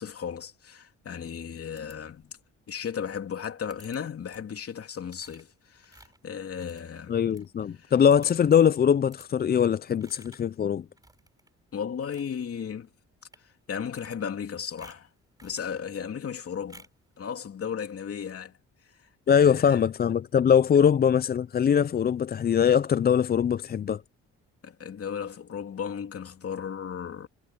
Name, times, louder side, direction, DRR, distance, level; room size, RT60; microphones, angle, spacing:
voice 1, 0.0-2.4 2.7-7.2 7.8-7.9 11.7-12.9 13.7-15.1 15.4-16.9 17.2-18.5 19.3-19.8 24.6-27.3, left 7 dB, 50° left, 3.1 m, -35 dB
sound 1, 1.8-2.5 3.7-4.0 4.3-4.6 5.1-7.5 7.8-7.9 8.1-8.5 9.1-9.3 10.0-10.5 11.0-11.5 11.9-12.4 13.2-13.5 13.7-14.5 14.8-15.7 16.7-17.1, right 2 dB, 10° right, 4.6 m, -55 dB
voice 2, 7.1-10.9 19.3-24.0, left 8 dB, 30° left, 0.4 m, -22 dB
cardioid pair, 90°, 30 cm